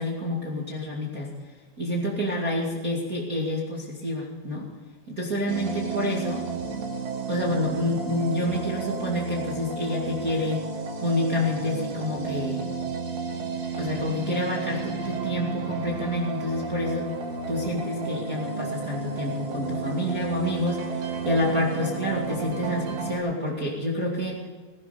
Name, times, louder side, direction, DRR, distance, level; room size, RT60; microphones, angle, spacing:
voice 1, 0.0-1.3 1.8-4.7 5.1-6.5 7.3-10.6 11.0-12.7 13.8-17.1 17.5-24.4, left 1 dB, 30° right, -3 dB, 1.7 m, -28 dB
sound 1, 5.5-23.2, right 4 dB, 70° right, 4.6 m, -32 dB
20.0 x 12.0 x 5.1 m, 1.4 s
omnidirectional pair, 5.3 m